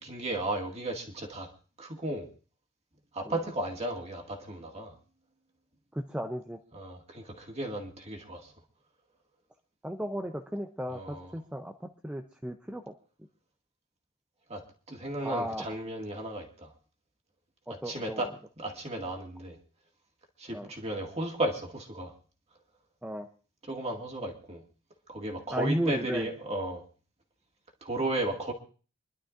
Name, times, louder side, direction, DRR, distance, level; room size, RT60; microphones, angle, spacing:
voice 1, 0.0-1.5 1.8-2.3 3.1-5.0 6.7-8.5 10.9-11.3 14.5-14.6 14.9-16.7 17.8-18.3 18.6-19.6 20.4-22.1 23.7-24.6 25.1-26.8 27.8-28.5, right 1 dB, 30° right, 1 dB, 2.0 m, -34 dB
voice 2, 5.9-6.6 9.8-12.9 15.2-15.7 17.7-18.3 20.5-20.7 23.0-23.3 25.5-26.3, equal, 5° right, 4 dB, 0.5 m, -34 dB
26.5 x 11.5 x 2.5 m, 0.38 s
head